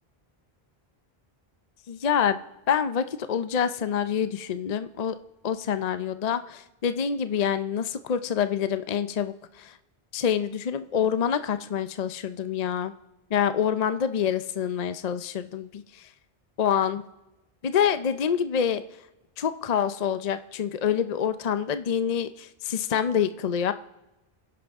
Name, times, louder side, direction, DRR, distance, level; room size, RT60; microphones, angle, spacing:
voice 1, 1.9-2.4 2.7-5.2 5.4-9.7 10.1-12.9 13.3-16.1 16.6-17.0 17.6-18.8 19.4-23.7, left 8 dB, 45° left, 11 dB, 0.6 m, -26 dB
30.0 x 11.0 x 3.6 m, 0.99 s
omnidirectional pair, 1.0 m